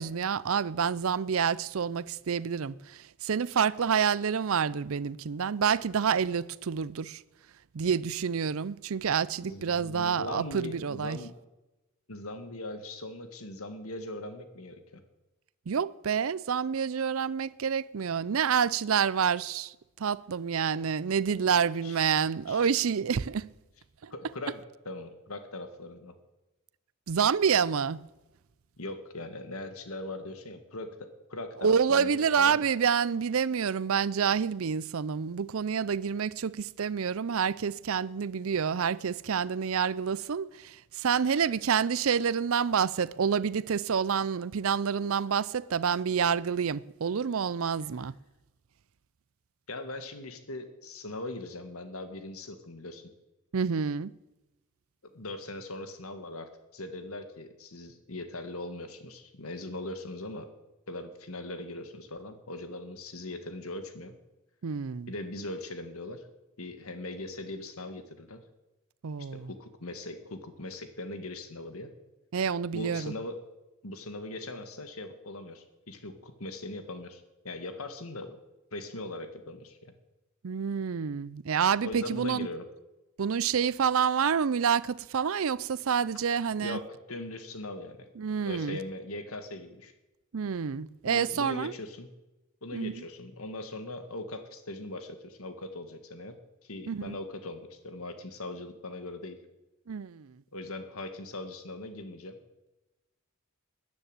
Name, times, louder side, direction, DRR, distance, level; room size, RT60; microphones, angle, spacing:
voice 1, 0.0-7.2 7.7-11.2 15.7-23.5 24.0-24.1 27.1-28.0 31.6-48.1 53.5-54.1 64.6-65.1 69.0-69.5 72.3-73.1 80.4-82.5 83.2-86.8 88.2-88.8 90.3-91.7 92.7-93.0 96.9-97.2 99.9-100.4, right 7 dB, 65° right, 0.5 m, -28 dB
voice 2, 9.4-11.3 12.1-15.0 21.8-22.0 22.5-22.7 24.1-24.6 24.9-26.2 28.8-32.6 41.2-41.4 49.7-53.1 55.0-60.5 60.9-64.2 65.1-66.3 66.6-68.4 69.2-71.9 72.7-73.4 73.8-78.4 78.7-79.9 81.8-82.6 86.6-88.1 88.5-89.9 91.1-92.1 92.6-96.4 96.6-99.4 100.5-102.4, left 2 dB, 75° left, 1.8 m, -40 dB
13.5 x 9.6 x 9.0 m
head